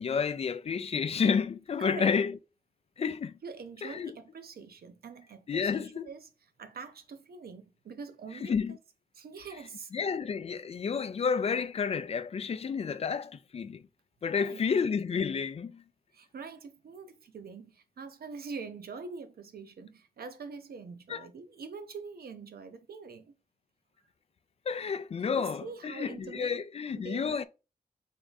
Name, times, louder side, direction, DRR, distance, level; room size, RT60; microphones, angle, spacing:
voice 1, 0.0-2.3 3.0-3.3 3.8-4.1 5.5-6.1 8.4-8.8 9.9-13.8 14.2-15.8 21.1-21.3 24.7-27.4, left 6 dB, 40° left, 0.3 m, -30 dB
voice 2, 1.8-2.2 3.4-6.3 6.6-8.8 9.1-9.9 14.3-14.7 16.1-23.3 25.4-26.7 26.9-27.4, right 5 dB, 85° right, 0.7 m, -44 dB
3.7 x 3.5 x 3.9 m
wide cardioid pair, 180°, 15 cm